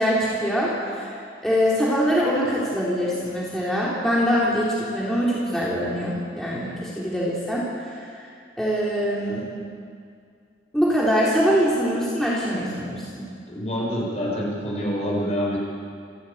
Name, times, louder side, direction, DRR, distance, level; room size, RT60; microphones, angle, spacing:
voice 1, 0.0-8.3 8.6-9.4 10.7-13.3, equal, ahead, -7 dB, 3.5 m, -23 dB
voice 2, 13.5-15.6, equal, 40° left, -3 dB, 5.8 m, -26 dB
28.0 x 13.0 x 8.7 m, 2.3 s
head